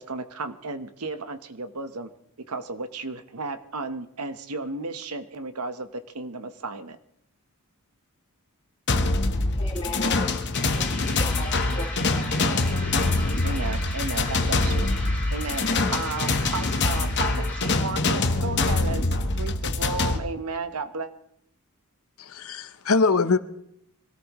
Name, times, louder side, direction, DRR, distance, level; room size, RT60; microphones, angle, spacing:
voice 1, 0.0-2.1 2.5-7.0 13.4-21.1, right 3 dB, 90° right, 9 dB, 1.1 m, -34 dB
sound 1, 8.9-20.2, left 2 dB, 50° left, 1.1 m, -24 dB
voice 2, 9.0-13.8, left 1 dB, 25° left, -3 dB, 2.7 m, -39 dB
sound 2, 10.2-17.8, left 2 dB, 10° left, 6.4 m, -37 dB
voice 3, 22.2-23.4, left 4 dB, 70° left, 11 dB, 0.9 m, -22 dB
25.5 x 17.5 x 3.1 m, 0.76 s
head